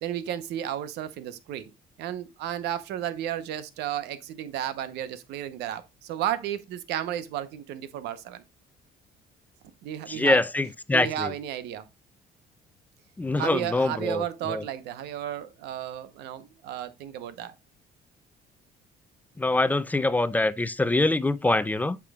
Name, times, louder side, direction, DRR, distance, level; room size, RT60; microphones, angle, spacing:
voice 1, 0.0-1.7 2.0-8.4 9.8-10.4 10.9-11.9 13.4-17.5, right 11 dB, 85° right, 0.8 m, -33 dB
voice 2, 10.1-11.3 13.2-14.6 19.4-22.0, left 2 dB, 10° left, 0.4 m, -24 dB
8.4 x 6.0 x 2.3 m
cardioid pair, 110°, 17 cm